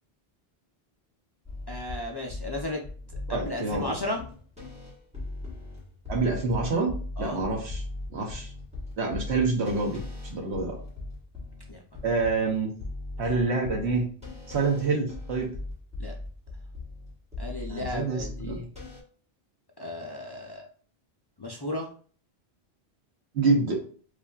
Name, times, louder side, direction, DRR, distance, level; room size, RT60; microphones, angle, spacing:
sound 1, 1.5-19.0, left 2 dB, 5° right, 1.3 m, -39 dB
voice 1, 1.7-2.8 3.3-4.2 7.2-7.4 11.7-12.0 16.0-16.1 17.4-18.6 19.8-20.7 21.4-21.9, left 1 dB, 35° left, 0 dB, 0.4 m, -34 dB
voice 2, 3.3-3.9 6.1-7.8 8.1-8.5 9.0-10.0 10.3-10.7 12.0-12.7 13.2-14.0 14.5-15.5 17.7-18.7 23.3-23.8, right 3 dB, 90° right, 0 dB, 1.1 m, -27 dB
4.8 x 2.5 x 2.4 m, 0.43 s
omnidirectional pair, 1.1 m